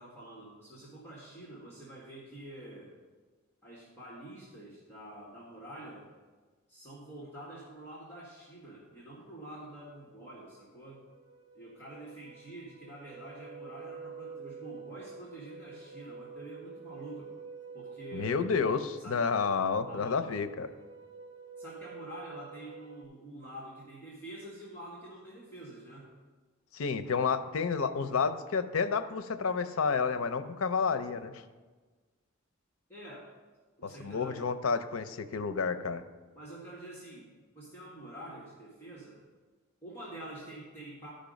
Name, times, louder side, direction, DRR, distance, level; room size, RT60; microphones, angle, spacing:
voice 1, 0.0-2.9 3.6-6.1 6.7-11.0 11.5-17.3 17.7-18.5 19.0-19.2 19.9-20.3 21.6-26.1 32.9-33.3 33.8-34.5 36.3-39.2 39.8-41.1, right 1 dB, 10° left, -6 dB, 1.7 m, -47 dB
sound 1, 10.2-10.3 10.5-23.0, right 5 dB, 60° right, 1.3 m, -48 dB
voice 2, 18.1-20.7 26.7-31.4 33.8-36.0, left 5 dB, 80° left, 11 dB, 0.6 m, -30 dB
12.0 x 5.2 x 5.2 m, 1.3 s
head